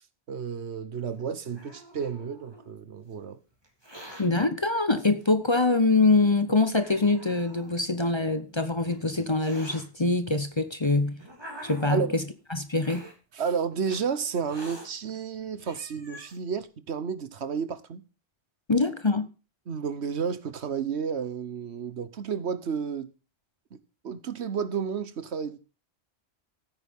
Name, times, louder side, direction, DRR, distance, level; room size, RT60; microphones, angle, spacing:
voice 1, 0.3-3.4 11.9-12.2 13.3-18.0 19.7-23.1 23.7-23.8 24.0-25.6, right 6 dB, 75° right, 1.3 m, -31 dB
Hiss, 1.1-2.7 3.6-4.2 5.2-5.3 6.1-6.2 6.8-7.8 8.6-9.8 10.7-12.2 12.8-13.1 13.8-14.0 14.4-14.9 15.4-15.5 15.6-16.4, equal, 20° right, 3.3 m, -45 dB
voice 2, 4.2-11.2 11.6-12.2 12.5-13.0 18.7-19.3, left 3 dB, 30° left, 0.8 m, -24 dB
15.5 x 8.7 x 3.6 m
omnidirectional pair, 1.1 m